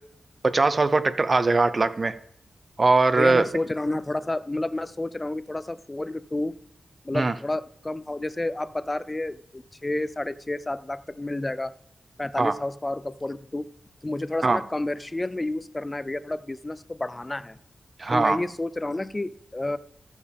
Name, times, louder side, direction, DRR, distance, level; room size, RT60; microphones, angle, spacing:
voice 1, 0.5-2.1 2.8-3.5 7.1-7.3 12.4-12.5 14.4-14.6 18.0-18.4, right 3 dB, 40° right, 12 dB, 0.8 m, -21 dB
voice 2, 3.2-6.6 7.0-11.7 12.2-13.7 14.0-17.6 18.1-19.8, left 2 dB, 20° left, 14 dB, 0.5 m, -30 dB
14.0 x 7.2 x 3.6 m, 0.70 s
wide cardioid pair, 95°, 0 cm